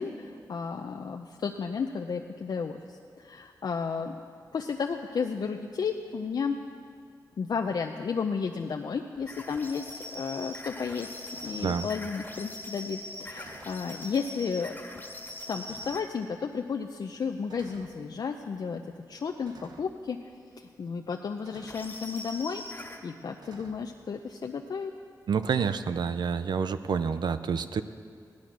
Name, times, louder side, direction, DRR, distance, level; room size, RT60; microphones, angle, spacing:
voice 1, 0.0-4.2 4.5-6.6 7.4-11.1 11.4-14.8 15.5-18.8 19.1-20.2 20.6-24.9, left 5 dB, 70° left, 3 dB, 0.6 m, -33 dB
sound 1, 9.1-9.3 11.3-11.8 13.3-13.9 14.7-14.8 15.6-16.1 17.5-18.0 19.4-19.9 21.4-21.9 23.4-23.9 25.4-25.9, right 4 dB, 70° right, 1.1 m, -51 dB
sound 2, 9.3-16.1 21.7-23.0, left 1 dB, 25° left, 1.7 m, -42 dB
voice 2, 25.3-27.8, right 6 dB, 90° right, 11 dB, 0.6 m, -28 dB
17.0 x 11.5 x 6.1 m, 2.3 s
wide cardioid pair, 110°, 7 cm